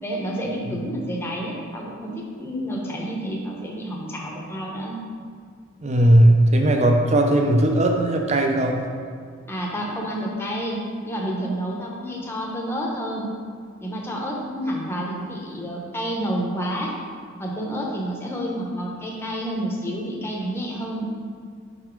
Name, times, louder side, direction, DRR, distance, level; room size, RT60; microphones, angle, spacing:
voice 1, 0.0-5.0 9.5-10.8 11.0-13.3 13.8-16.9 17.4-21.1, equal, 10° left, -2 dB, 0.8 m, -29 dB
voice 2, 5.8-8.8, right 1 dB, 35° right, 2 dB, 0.5 m, -17 dB
5.6 x 4.0 x 4.5 m, 2.1 s
head